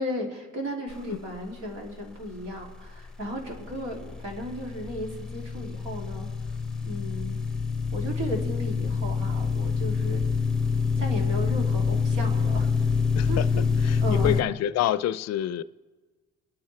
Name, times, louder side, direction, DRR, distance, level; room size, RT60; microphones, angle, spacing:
voice 1, 0.0-6.3 6.8-7.4 7.9-10.2 11.0-12.7 13.3-14.4, equal, 85° right, 2.8 m, -35 dB
sound 1, 3.6-14.4, left 5 dB, ahead, 0.7 m, -26 dB
voice 2, 13.2-13.5 13.8-15.6, left 12 dB, 60° left, 0.4 m, -27 dB
24.0 x 9.5 x 3.3 m
cardioid pair, 90°, 30 cm